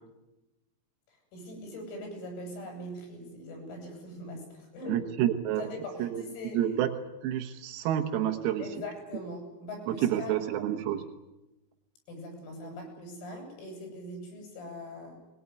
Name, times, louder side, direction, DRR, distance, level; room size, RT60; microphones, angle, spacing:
voice 1, 1.1-5.1 5.6-6.7 8.6-10.4 12.1-15.2, left 1 dB, 90° left, 3 dB, 10.0 m, -41 dB
voice 2, 4.9-5.7 6.0-6.2 6.5-6.9 7.2-8.6 9.9-11.0 12.6-12.7, right 11 dB, 90° right, 4 dB, 4.1 m, -29 dB
22.5 x 22.0 x 9.6 m, 1.0 s
omnidirectional pair, 6.0 m